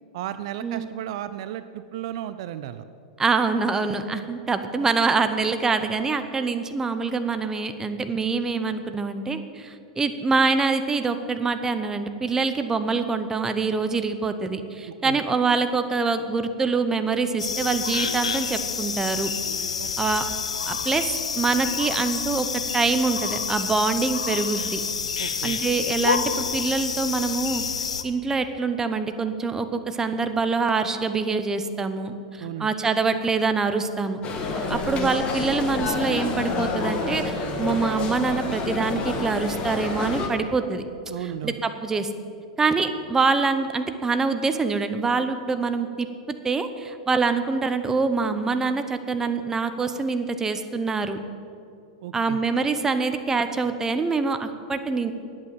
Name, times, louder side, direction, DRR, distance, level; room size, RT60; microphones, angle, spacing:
voice 1, 0.1-2.8 14.9-15.2 19.8-19.9 25.2-25.6 32.4-32.7 34.7-34.8 41.1-41.6 52.0-52.4, right 12 dB, 60° right, 12 dB, 0.5 m, -34 dB
voice 2, 3.2-19.3 20.0-20.2 20.7-21.1 21.3-24.8 25.4-27.6 28.0-34.2 34.7-40.8 41.4-42.1 42.6-51.2 52.1-55.1, right 4 dB, 15° right, 9 dB, 0.9 m, -25 dB
sound 1, 17.4-28.0, left 6 dB, 85° left, 0.8 m, -28 dB
sound 2, 34.2-40.3, left 3 dB, 35° left, 1.7 m, -28 dB
9.6 x 8.6 x 7.7 m, 2.5 s
hypercardioid pair, 105°, 3 cm